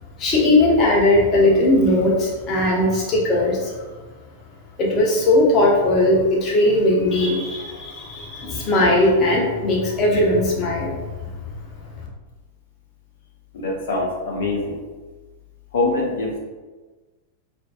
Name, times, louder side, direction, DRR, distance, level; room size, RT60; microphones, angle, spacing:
voice 1, 0.2-3.7 4.8-11.0, left 1 dB, 30° left, -3 dB, 0.9 m, -18 dB
voice 2, 13.5-14.8 15.7-16.4, left 2 dB, 60° left, -2 dB, 0.8 m, -24 dB
4.2 x 2.6 x 2.3 m, 1.3 s
figure-of-eight pair, 95°, 0 cm